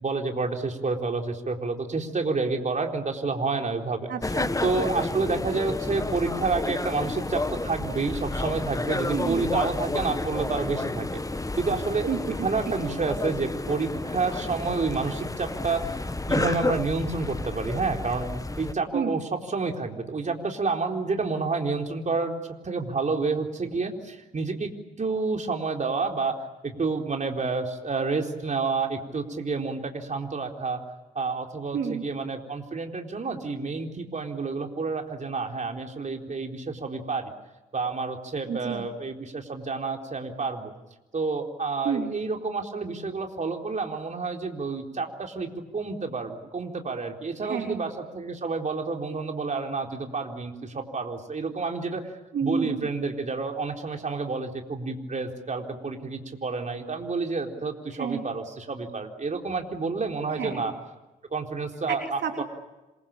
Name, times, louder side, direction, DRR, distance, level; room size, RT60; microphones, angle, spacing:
voice 1, 0.0-4.1 4.6-11.2 11.6-12.1 12.4-15.9 16.3-22.4 22.6-24.7 25.0-26.4 26.6-30.8 31.1-37.3 37.7-40.7 41.1-52.0 52.4-60.7 61.3-62.4, right 4 dB, 35° right, 3 dB, 4.1 m, -29 dB
voice 2, 4.1-4.5 9.1-9.4 12.1-12.2 18.9-19.2 31.7-32.0 38.5-38.9 41.8-42.1 47.4-47.8 52.3-52.9 57.9-58.3 60.3-60.7 61.9-62.4, right 6 dB, 55° right, 3 dB, 3.4 m, -30 dB
sound 1, 4.2-18.7, left 2 dB, 15° left, 1.5 m, -31 dB
27.0 x 22.5 x 8.9 m, 1.0 s
hypercardioid pair, 45°, 21 cm